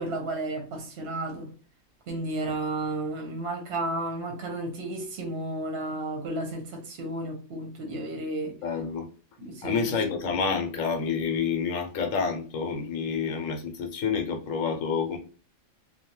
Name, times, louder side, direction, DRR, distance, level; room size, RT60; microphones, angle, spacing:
voice 1, 0.0-1.5 2.1-8.5 9.4-9.9, right 2 dB, 55° right, 0.8 m, -32 dB
voice 2, 8.6-9.1 9.6-15.2, left 5 dB, 75° left, 1.0 m, -28 dB
2.6 x 2.2 x 2.9 m
omnidirectional pair, 1.4 m